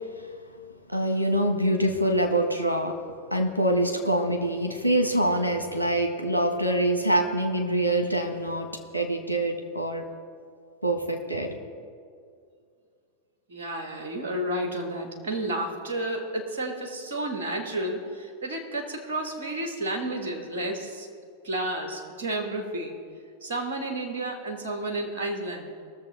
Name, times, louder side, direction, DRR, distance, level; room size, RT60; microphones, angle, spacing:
voice 1, 0.9-2.9 3.3-8.7 8.9-10.0 10.8-11.6, right 1 dB, 85° right, 5 dB, 1.3 m, -25 dB
voice 2, 13.5-21.1 21.4-23.0 23.4-25.7, right 1 dB, 60° right, 3 dB, 1.6 m, -31 dB
20.0 x 7.0 x 4.1 m, 2.2 s
figure-of-eight pair, 90°, 0 cm